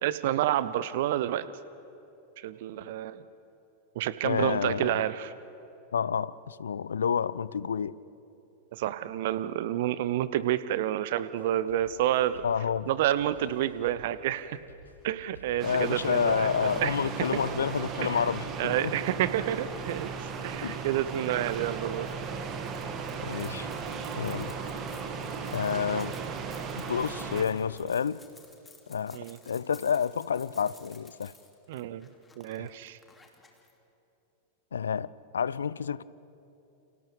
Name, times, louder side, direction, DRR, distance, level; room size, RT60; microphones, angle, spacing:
voice 1, 0.0-1.5 2.4-3.2 3.9-5.3 8.7-12.4 12.9-14.6 15.0-17.3 18.6-22.1 29.1-29.4 31.7-32.1 32.4-33.0, right 12 dB, 55° right, 15 dB, 0.7 m, -29 dB
voice 2, 4.2-5.0 5.9-7.9 12.4-12.9 15.6-19.0 20.6-20.8 23.2-23.7 24.2-24.5 25.5-26.1 26.8-28.2 28.9-31.3 32.6-32.7 34.7-36.0, left 7 dB, 70° left, 20 dB, 0.4 m, -29 dB
sound 1, 11.2-25.2, equal, 85° right, 6.2 m, -54 dB
sound 2, 15.6-27.4, right 5 dB, 30° right, 2.0 m, -36 dB
sound 3, 22.0-33.7, left 4 dB, 10° left, 2.6 m, -56 dB
30.0 x 29.5 x 3.5 m, 2.9 s
figure-of-eight pair, 90°, 0 cm